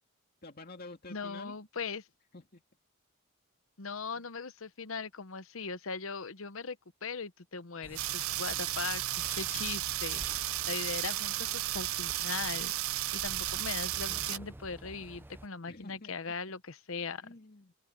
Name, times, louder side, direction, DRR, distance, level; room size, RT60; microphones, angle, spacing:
voice 1, 0.4-1.6 2.3-2.6 4.2-4.3 15.7-16.1 17.2-17.7, left 2 dB, 45° left, 2.5 m, -49 dB
voice 2, 1.1-2.1 3.8-17.3, left 5 dB, 65° left, 1.0 m, -40 dB
sound 1, 7.8-15.5, right 2 dB, 10° right, 0.5 m, -48 dB
sound 2, 8.0-14.4, right 15 dB, 75° right, 0.6 m, -34 dB
open air
head